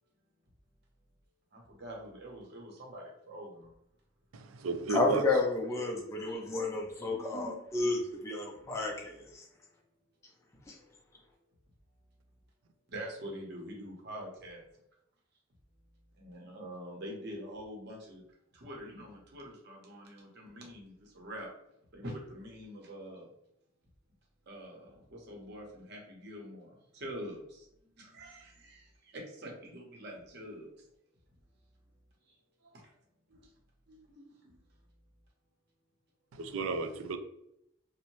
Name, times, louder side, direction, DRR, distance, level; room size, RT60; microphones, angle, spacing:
voice 1, 1.5-3.7 4.7-4.8 5.9-6.4 7.0-7.3 12.9-14.6 16.2-18.2 18.5-21.5 21.9-23.3 24.5-27.7 28.0-30.7 32.7-32.9 33.3-33.4 33.9-34.5, equal, 55° right, 0.8 m, -45 dB
voice 2, 4.3-5.2 36.3-37.2, right 3 dB, 85° right, 0.4 m, -33 dB
voice 3, 4.9-9.4 10.7-10.8, left 2 dB, 15° left, 0.4 m, -31 dB
2.7 x 2.0 x 2.9 m
head